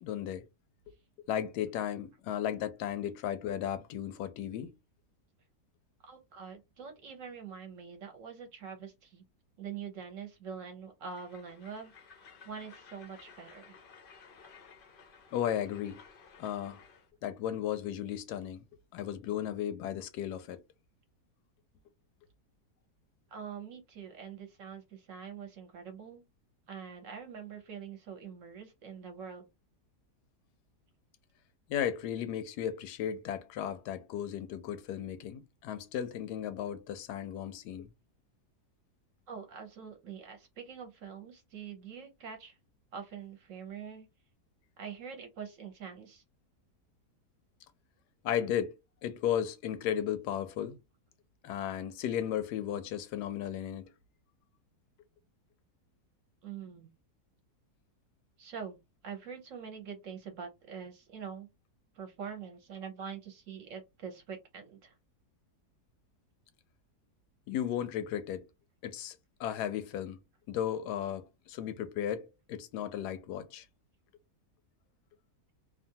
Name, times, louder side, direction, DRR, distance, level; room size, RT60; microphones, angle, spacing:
voice 1, 0.0-0.5 1.3-4.7 15.3-16.0 16.4-16.8 17.2-18.6 18.9-20.6 31.7-37.9 48.2-48.7 49.0-50.8 51.4-53.9 67.5-68.4 68.8-70.2 70.5-73.6, left 10 dB, 85° left, 1.1 m, -35 dB
voice 2, 6.0-9.2 9.6-13.7 23.3-26.2 26.7-29.5 39.3-42.6 42.9-44.1 44.8-46.2 56.4-56.9 58.4-58.8 59.0-61.5 61.9-64.9, right 7 dB, 60° right, 1.0 m, -44 dB
Train, 11.0-17.1, left 6 dB, 60° left, 0.5 m, -56 dB
2.9 x 2.4 x 2.7 m
omnidirectional pair, 1.7 m